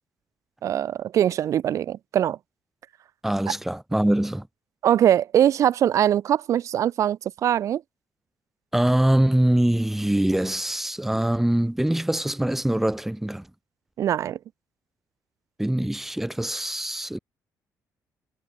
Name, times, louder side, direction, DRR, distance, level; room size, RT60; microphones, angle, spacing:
voice 1, 0.6-2.4 4.8-7.8 14.0-14.4, right 10 dB, 55° right, 1.2 m, -22 dB
voice 2, 3.2-4.5 8.7-13.5 15.6-17.2, right 1 dB, 5° right, 1.7 m, -23 dB
cardioid pair, 165°, 7 cm